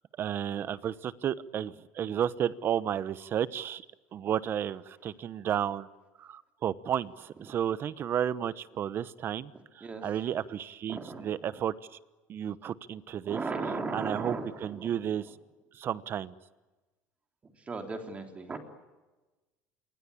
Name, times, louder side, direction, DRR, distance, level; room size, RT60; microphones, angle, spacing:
voice 1, 0.2-3.8 4.1-5.9 6.2-12.0 12.3-13.4 13.9-15.3 15.7-16.3, right 9 dB, 40° right, 16 dB, 1.1 m, -32 dB
voice 2, 10.9-11.3 13.3-14.9 17.7-18.6, right 3 dB, 20° right, 5 dB, 3.4 m, -36 dB
27.0 x 24.0 x 8.6 m, 1.2 s
cardioid pair, 140°, 6 cm